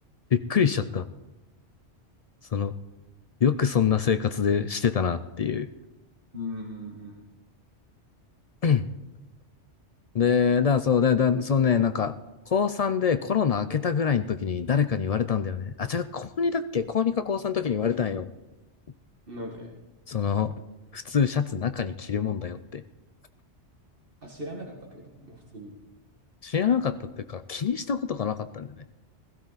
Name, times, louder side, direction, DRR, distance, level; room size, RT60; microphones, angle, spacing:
voice 1, 0.3-1.1 2.5-2.7 3.4-5.7 8.6-8.9 10.1-12.1 12.5-18.3 20.1-20.5 20.9-22.8 26.4-28.8, left 7 dB, 55° left, 11 dB, 0.4 m, -25 dB
voice 2, 6.3-7.2 19.3-19.7 24.2-25.7, left 1 dB, 50° right, 0 dB, 2.0 m, -39 dB
16.5 x 14.0 x 4.0 m, 1.1 s
omnidirectional pair, 1.2 m